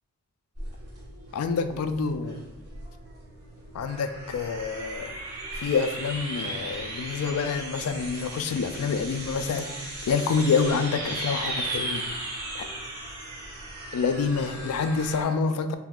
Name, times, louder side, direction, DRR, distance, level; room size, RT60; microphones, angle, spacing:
sound 1, 0.5-15.2, right 2 dB, 90° right, 1.2 m, -37 dB
voice 1, 1.3-2.4 3.7-5.1 5.6-12.0 12.5-12.7 13.9-15.8, left 5 dB, 85° left, 11 dB, 0.3 m, -27 dB
2.7 x 2.2 x 3.7 m, 0.98 s
head